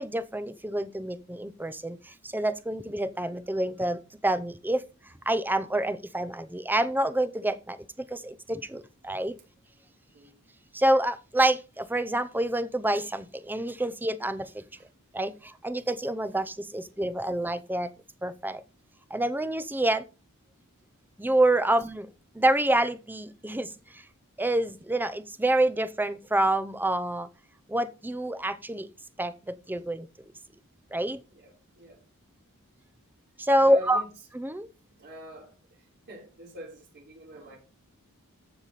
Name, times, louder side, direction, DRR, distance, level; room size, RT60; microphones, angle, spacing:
voice 1, 0.0-4.8 5.3-9.4 10.7-14.6 15.1-17.9 18.2-18.6 19.1-20.0 21.2-22.1 22.3-24.0 24.4-27.3 27.7-28.9 29.2-30.1 30.9-31.2 33.4-34.0 34.3-34.7, right 1 dB, 10° right, 0.6 m, -27 dB
voice 2, 31.3-32.0 33.6-34.1 34.9-37.6, right 2 dB, 50° right, 3.7 m, -45 dB
14.5 x 5.0 x 4.0 m
head